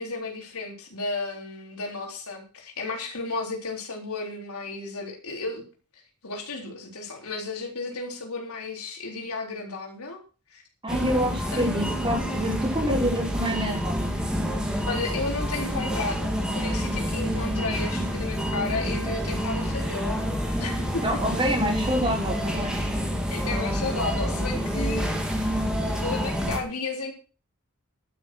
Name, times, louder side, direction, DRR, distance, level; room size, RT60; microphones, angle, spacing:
voice 1, 0.0-5.6 6.2-10.2 10.5-10.6 11.5-11.6 14.9-20.2 20.6-21.0 23.3-25.1 26.0-27.1, left 3 dB, 80° left, 1 dB, 3.9 m, -33 dB
voice 2, 10.8-14.1 21.0-22.8, equal, 25° right, -1 dB, 5.6 m, -27 dB
sound 1, 10.9-26.6, equal, 5° right, 3.1 m, -28 dB
11.5 x 10.0 x 6.2 m, 0.37 s
head